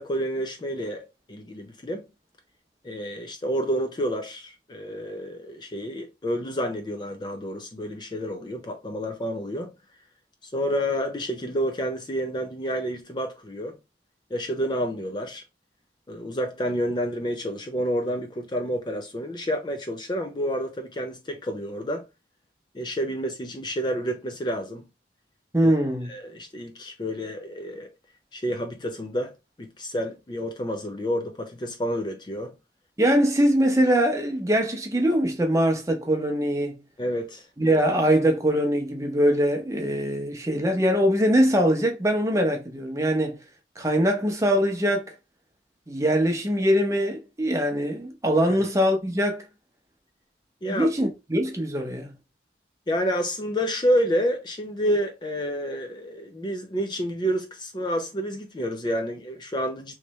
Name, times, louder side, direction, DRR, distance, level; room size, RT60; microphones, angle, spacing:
voice 1, 0.0-2.0 2.8-9.7 10.4-13.8 14.3-15.4 16.1-22.0 22.7-24.9 25.6-25.7 26.1-27.9 28.3-29.3 29.6-32.5 37.0-37.5 50.6-50.9 52.9-59.9, equal, 25° left, 0.4 m, -29 dB
voice 2, 25.5-26.1 33.0-36.8 37.6-43.4 43.8-45.1 45.9-49.4 50.7-52.1, equal, 15° right, 0.8 m, -22 dB
3.2 x 3.1 x 3.0 m
head